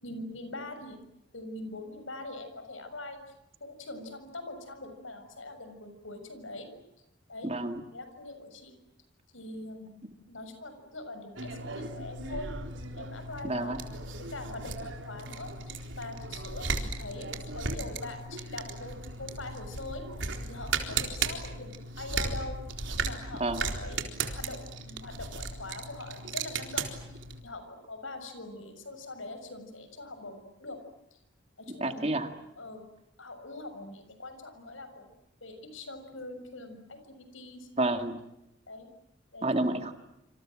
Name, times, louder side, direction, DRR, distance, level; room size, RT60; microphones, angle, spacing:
voice 1, 0.0-1.0 1.3-3.2 3.6-6.7 7.3-7.5 7.9-8.7 9.3-9.9 10.3-12.5 12.9-13.8 14.2-22.6 23.0-30.8 31.1-31.2 31.6-32.2 32.6-32.8 33.2-35.1 35.4-37.7 38.7-38.9 39.3-39.8, left 2 dB, 80° left, 9 dB, 6.6 m, -43 dB
voice 2, 7.4-7.8 13.4-13.8 23.4-23.6 31.8-32.3 37.8-38.2 39.4-39.9, right 2 dB, 30° right, 7 dB, 2.2 m, -29 dB
sound 1, 11.4-27.4, right 4 dB, 70° right, 4.0 m, -36 dB
28.0 x 26.5 x 7.7 m, 0.87 s
head